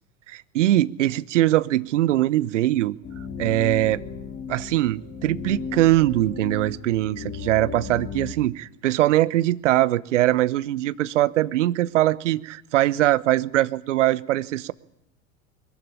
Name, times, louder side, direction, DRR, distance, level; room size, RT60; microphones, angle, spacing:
voice 1, 0.3-3.0 3.4-4.0 4.5-14.7, right 15 dB, 70° right, 18 dB, 1.1 m, -22 dB
sound 1, 3.0-8.3, left 6 dB, 30° left, 4.0 m, -35 dB
23.0 x 22.0 x 9.9 m, 0.74 s
figure-of-eight pair, 75°, 38 cm